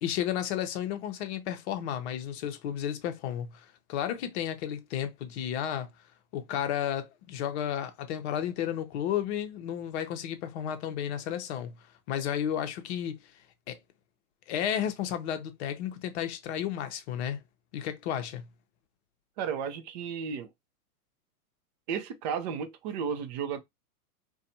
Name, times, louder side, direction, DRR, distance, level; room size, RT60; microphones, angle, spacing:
voice 1, 0.0-5.9 6.3-11.8 12.1-13.2 13.7-13.8 14.5-17.4 17.7-18.5, left 10 dB, 45° left, 0.7 m, -32 dB
voice 2, 19.4-20.5 21.9-23.6, right 7 dB, 30° right, 0.4 m, -33 dB
2.5 x 2.2 x 2.6 m
hypercardioid pair, 120°, 45 cm